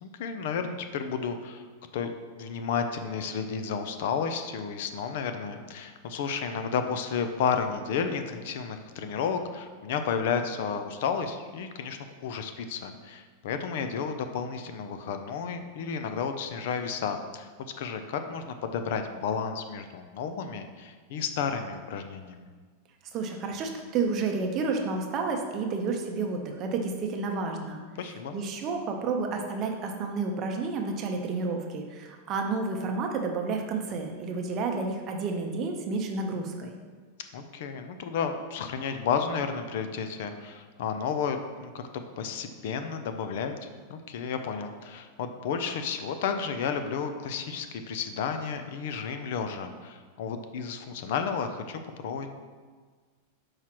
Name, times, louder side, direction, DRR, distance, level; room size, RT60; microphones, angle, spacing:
voice 1, 0.0-1.6 1.9-17.5 17.8-22.5 28.0-28.3 37.3-43.5 43.9-52.3, left 6 dB, 55° left, 7 dB, 0.5 m, -32 dB
voice 2, 23.1-27.8 28.3-36.7, right 4 dB, 25° right, 3 dB, 0.7 m, -30 dB
4.8 x 4.4 x 5.9 m, 1.5 s
supercardioid pair, 170°, 0 cm